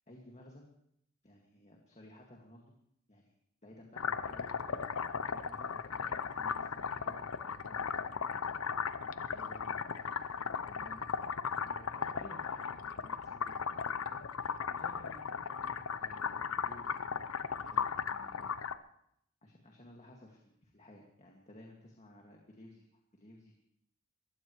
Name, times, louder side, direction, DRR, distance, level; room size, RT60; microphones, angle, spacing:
voice 1, 0.1-0.6 1.2-2.6 3.1-3.3 3.6-7.9 8.3-8.6 9.0-11.1 11.6-17.2 17.5-18.5 19.4-22.8 23.1-23.5, left 1 dB, 35° left, 0 dB, 2.1 m, -56 dB
sound 1, 4.0-18.8, left 6 dB, 80° left, 0.7 m, -37 dB
22.0 x 16.0 x 3.2 m, 0.72 s
head